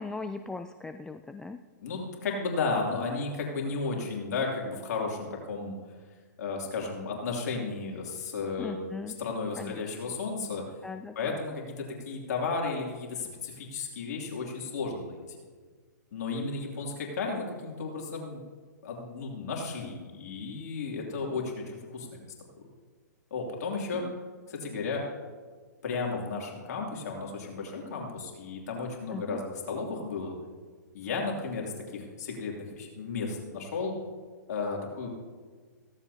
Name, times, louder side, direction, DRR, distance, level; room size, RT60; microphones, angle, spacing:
voice 1, 0.0-1.6 8.6-9.2 9.6-10.1 10.8-11.4 23.9-24.2 29.1-29.4, left 3 dB, 5° left, 8 dB, 0.3 m, -39 dB
voice 2, 1.8-5.8 6.4-8.9 9.2-10.6 11.1-15.4 16.1-18.4 18.8-22.2 23.3-24.0 24.5-25.0 25.8-30.4 30.9-33.9 34.5-35.1, left 4 dB, 60° left, -1 dB, 2.8 m, -34 dB
16.0 x 14.5 x 2.8 m, 1.5 s
hypercardioid pair, 130°, 10 cm